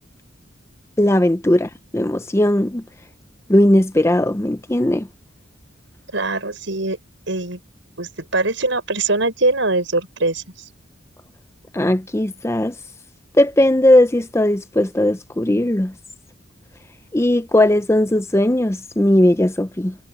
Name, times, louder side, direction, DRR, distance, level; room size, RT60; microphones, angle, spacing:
voice 1, 1.0-2.8 3.5-5.1 11.7-12.7 13.3-15.9 17.1-19.9, left 1 dB, 15° left, 0.5 m, -17 dB
voice 2, 6.1-7.0 7.3-7.6 8.0-10.4, right 2 dB, 70° right, 6.0 m, -22 dB
head